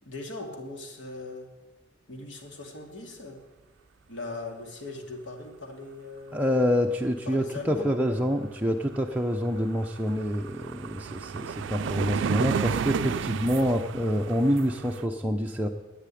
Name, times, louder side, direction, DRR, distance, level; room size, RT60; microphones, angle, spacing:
voice 1, 0.0-1.5 2.1-3.4 4.1-6.5 7.2-7.9, left 3 dB, 70° left, 2 dB, 2.7 m, -39 dB
voice 2, 6.3-15.7, equal, 10° right, 1 dB, 0.7 m, -27 dB
sound 1, 8.9-9.0 9.3-15.1, right 6 dB, 70° right, 0.4 m, -32 dB
12.0 x 9.4 x 10.0 m, 1.2 s
head